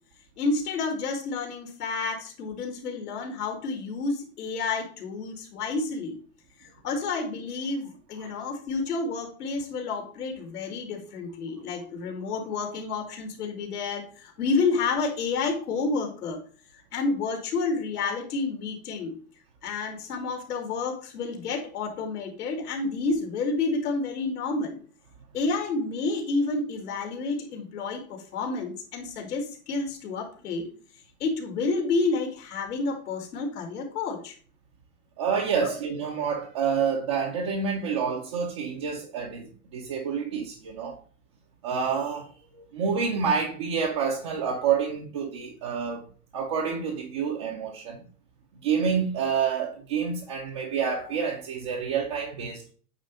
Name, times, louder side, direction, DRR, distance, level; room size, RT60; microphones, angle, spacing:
voice 1, 0.4-6.2 6.6-16.4 16.7-19.2 19.6-24.8 25.3-30.7 31.2-34.3 35.6-35.7, left 3 dB, 80° left, 2.8 m, -30 dB
voice 2, 35.2-41.0 41.6-46.0 46.3-48.1 48.6-52.7, right 6 dB, 20° right, 0.4 m, -28 dB
8.8 x 3.1 x 5.4 m
supercardioid pair, 170°, 45 cm